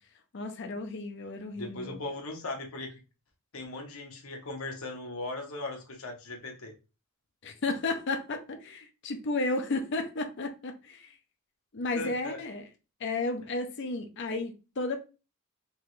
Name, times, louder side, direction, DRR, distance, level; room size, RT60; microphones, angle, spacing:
voice 1, 0.3-2.0 7.4-11.1 11.7-12.7 13.0-15.0, left 2 dB, 55° left, 0.6 m, -33 dB
voice 2, 1.5-3.0 3.5-6.7 11.9-12.4, left 2 dB, 75° left, 1.1 m, -38 dB
3.6 x 3.0 x 3.1 m
head